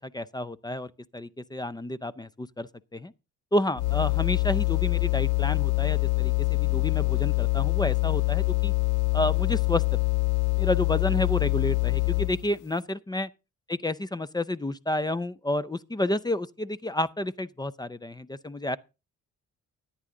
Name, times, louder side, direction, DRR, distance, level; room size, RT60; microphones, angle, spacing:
voice 1, 0.0-3.1 3.5-8.7 9.1-10.0 10.6-13.3 13.7-18.8, left 1 dB, 15° left, 0.5 m, -30 dB
sound 1, 3.8-12.5, left 24 dB, 80° left, 0.5 m, -25 dB
13.5 x 9.7 x 3.8 m
cardioid pair, 90°, 30 cm